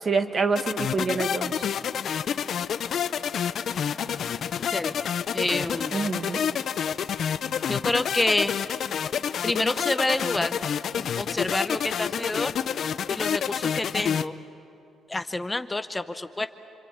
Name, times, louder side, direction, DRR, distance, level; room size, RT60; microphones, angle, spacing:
voice 1, 0.0-1.7 5.9-6.5, right 4 dB, 40° right, 8 dB, 1.7 m, -26 dB
sound 1, 0.6-14.3, left 8 dB, 60° left, 0.7 m, -28 dB
voice 2, 5.3-6.0 7.7-8.5 9.4-10.6 11.0-12.5 13.1-14.3 15.1-16.5, left 2 dB, 15° left, 10 dB, 0.7 m, -28 dB
27.5 x 24.0 x 8.7 m, 2.9 s
cardioid pair, 90°, 0 cm